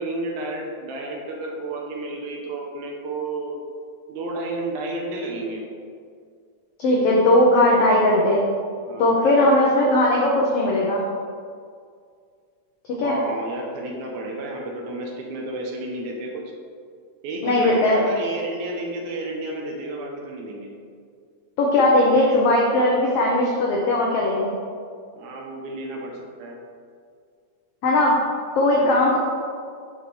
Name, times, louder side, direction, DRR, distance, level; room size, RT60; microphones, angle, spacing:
voice 1, 0.0-3.5 4.1-5.6 7.7-8.1 8.9-9.5 12.9-16.4 17.2-20.7 25.1-26.6 28.7-29.0, right 2 dB, 75° right, 0 dB, 2.1 m, -31 dB
voice 2, 6.8-8.4 9.0-11.0 13.0-13.2 17.4-18.0 21.6-24.5 27.8-28.2 28.6-29.2, left 1 dB, 85° left, -3 dB, 1.3 m, -18 dB
5.8 x 5.3 x 3.2 m, 2.1 s
omnidirectional pair, 3.6 m